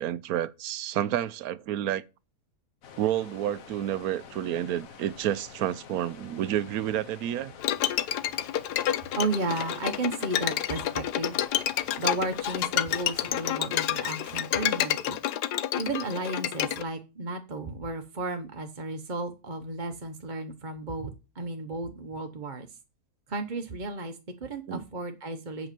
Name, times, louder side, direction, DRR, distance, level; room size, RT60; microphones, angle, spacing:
voice 1, 0.0-2.0 3.0-7.5 24.7-24.8, right 11 dB, 70° right, 1.1 m, -30 dB
sound 1, 2.8-13.6, left 6 dB, 60° left, 1.4 m, -48 dB
Bowed string instrument, 7.6-16.8, left 12 dB, 85° left, 1.2 m, -29 dB
voice 2, 9.2-11.4 12.0-15.2 15.7-21.1 21.3-22.7 23.3-25.7, right 2 dB, 35° right, 1.0 m, -33 dB
7.9 x 5.2 x 7.5 m
omnidirectional pair, 1.7 m